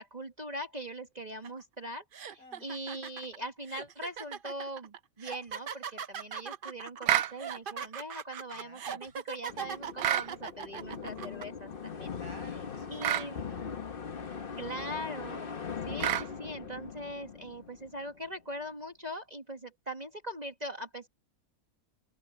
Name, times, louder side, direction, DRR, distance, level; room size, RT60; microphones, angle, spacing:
voice 1, 0.0-12.1 12.9-13.4 14.6-15.5 15.8-21.1, equal, 25° right, 1.8 m, -41 dB
sound 1, 1.4-1.6 2.1-11.4, right 7 dB, 45° right, 0.7 m, -40 dB
voice 2, 2.4-2.8 8.5-9.2 12.1-15.0, left 2 dB, 70° left, 6.5 m, -55 dB
sound 2, 7.1-7.3 10.0-10.3 13.0-13.3 16.0-16.3, right 12 dB, 80° right, 1.1 m, -27 dB
sound 3, 9.5-18.3, left 6 dB, 40° left, 1.2 m, -41 dB
omnidirectional pair, 1.6 m